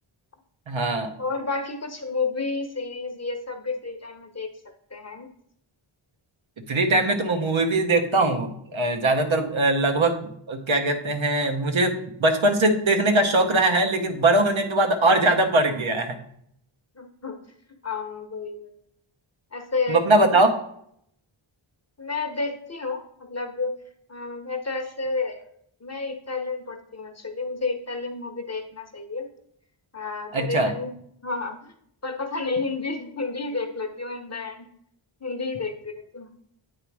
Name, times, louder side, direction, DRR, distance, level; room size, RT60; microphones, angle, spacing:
voice 1, 0.7-1.1 6.6-16.2 19.9-20.6 30.3-30.7, right 2 dB, 70° right, 4 dB, 0.9 m, -21 dB
voice 2, 1.2-4.5 4.9-5.3 17.0-17.4 17.8-18.7 19.5-20.0 22.0-23.7 24.1-25.5 25.8-29.3 29.9-31.7 32.0-34.7 35.2-36.3, left 3 dB, 30° left, 6 dB, 0.8 m, -31 dB
8.6 x 3.0 x 4.7 m, 0.70 s
wide cardioid pair, 75°, 49 cm